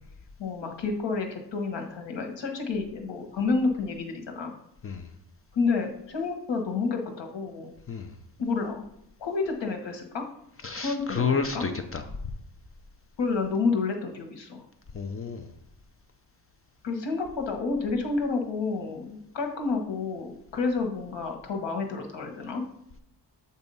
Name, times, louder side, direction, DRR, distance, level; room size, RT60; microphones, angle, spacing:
voice 1, 0.4-4.5 5.5-7.7 8.4-8.8 9.2-10.2 10.8-11.2 11.5-11.7 13.2-14.6 16.8-22.6, left 4 dB, 90° left, 4 dB, 1.2 m, -29 dB
voice 2, 10.6-12.0 14.9-15.5, left 5 dB, 35° left, 7 dB, 0.5 m, -30 dB
7.9 x 2.7 x 5.4 m, 0.77 s
cardioid pair, 110°, 42 cm